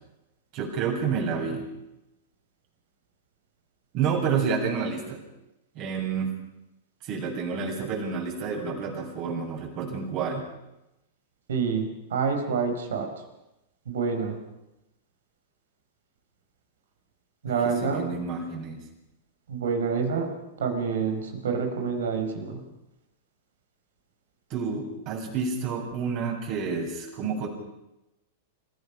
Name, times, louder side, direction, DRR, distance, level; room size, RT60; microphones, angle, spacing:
voice 1, 0.5-1.7 3.9-5.2 5.7-6.4 7.0-10.4 17.5-18.8 24.5-27.5, right 5 dB, 45° right, 0 dB, 7.6 m, -29 dB
voice 2, 11.5-13.1 13.9-14.4 17.4-18.1 19.5-20.3 20.6-22.6, right 5 dB, 75° right, 5 dB, 4.8 m, -27 dB
30.0 x 16.0 x 6.0 m, 0.91 s
hypercardioid pair, 105°, 0 cm